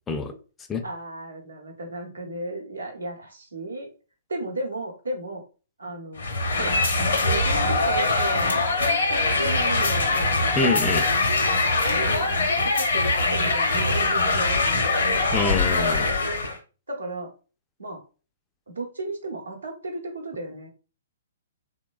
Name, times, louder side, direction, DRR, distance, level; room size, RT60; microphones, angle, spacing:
voice 1, 0.8-3.9 4.3-5.4 5.8-6.2 6.6-6.8 7.2-10.4 11.8-14.9 16.9-17.3 17.8-18.0 18.7-20.7, right 2 dB, 75° right, 1 dB, 0.8 m, -34 dB
sound 1, 6.2-16.6, left 3 dB, 65° left, 0.6 m, -22 dB
voice 2, 10.6-11.1 15.3-16.1, left 3 dB, 15° left, 6 dB, 0.3 m, -25 dB
3.1 x 2.1 x 2.3 m, 0.35 s
figure-of-eight pair, 120°, 0 cm